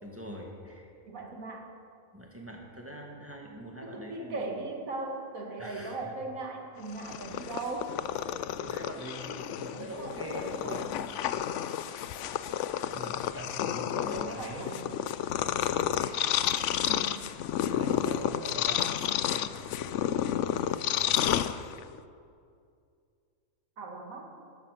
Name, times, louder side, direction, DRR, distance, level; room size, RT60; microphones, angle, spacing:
voice 1, 0.0-0.9 2.1-4.4 5.6-6.1 8.6-11.2 12.9-14.7 16.0-16.3 17.7-20.3 20.9-21.2, equal, 10° right, -1 dB, 1.9 m, -43 dB
voice 2, 1.1-1.7 3.8-8.0 9.7-10.9 13.6-14.9 16.8-17.3 23.8-24.3, right 3 dB, 80° right, 2 dB, 2.1 m, -39 dB
Purr, 6.8-22.0, left 10 dB, 70° left, 0.8 m, -31 dB
13.0 x 11.0 x 6.6 m, 2.3 s
omnidirectional pair, 1.4 m